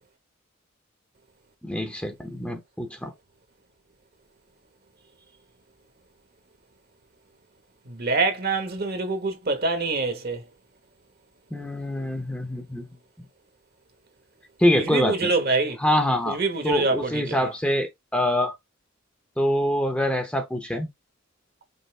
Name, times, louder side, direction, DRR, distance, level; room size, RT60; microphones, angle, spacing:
voice 1, 1.6-3.1 11.5-12.8 14.6-15.3 15.8-16.4 16.6-18.5 19.4-20.9, left 1 dB, 5° left, 0.7 m, -25 dB
voice 2, 7.9-10.4 14.8-15.8 16.3-17.4, right 3 dB, 50° right, 1.1 m, -25 dB
5.4 x 2.6 x 3.4 m
head